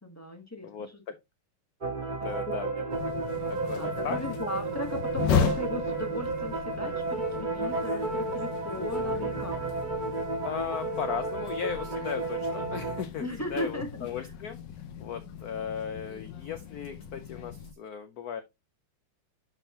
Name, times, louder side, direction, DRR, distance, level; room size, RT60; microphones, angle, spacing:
voice 1, 0.0-1.0 2.2-2.5 3.7-9.6 13.2-14.3, left 1 dB, 20° left, 0.4 m, -37 dB
voice 2, 0.6-1.1 2.2-3.1 3.5-4.2 10.4-14.6 15.0-18.4, left 7 dB, 90° left, 0.8 m, -36 dB
sound 1, 1.8-13.0, right 3 dB, 25° right, 1.4 m, -32 dB
sound 2, 2.9-17.7, left 8 dB, 65° left, 1.3 m, -36 dB
11.0 x 4.1 x 2.8 m
omnidirectional pair, 2.4 m